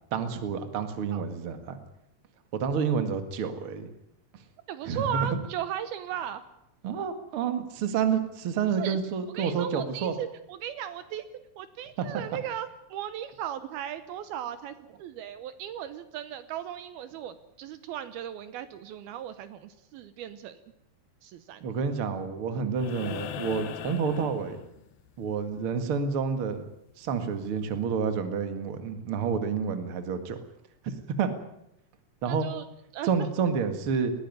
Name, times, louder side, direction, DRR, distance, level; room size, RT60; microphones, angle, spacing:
voice 1, 0.1-1.8 2.5-3.9 4.9-5.4 6.8-10.1 12.0-12.1 21.6-24.6 25.2-26.6 27.0-30.4 30.8-31.3 32.2-32.5 33.0-34.1, right 6 dB, 45° right, 8 dB, 2.1 m, -29 dB
voice 2, 4.7-6.4 8.8-9.0 9.4-20.6 21.2-21.6 32.3-32.6 32.9-33.1, right 10 dB, 75° right, 12 dB, 2.7 m, -36 dB
sound 1, 22.8-25.1 26.9-27.0, left 12 dB, 70° left, 2.6 m, -39 dB
20.0 x 16.5 x 9.7 m, 0.80 s
omnidirectional pair, 4.6 m